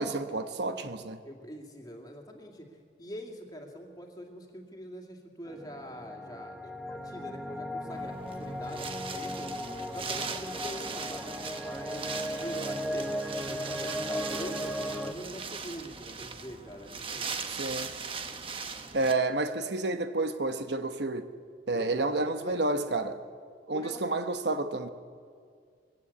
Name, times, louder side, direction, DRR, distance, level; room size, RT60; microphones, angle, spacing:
voice 1, 0.0-1.2 17.5-17.9 18.9-21.3 21.7-23.2 23.7-24.9, right 2 dB, 65° right, 1.1 m, -30 dB
voice 2, 1.2-9.7 9.9-13.1 13.5-17.3 21.7-22.8 23.7-24.2, equal, 20° left, 2.5 m, -44 dB
sound 1, 5.5-15.1, equal, ahead, 1.0 m, -36 dB
Wind, 7.9-19.1, right 5 dB, 30° right, 1.1 m, -39 dB
21.5 x 17.0 x 8.5 m
head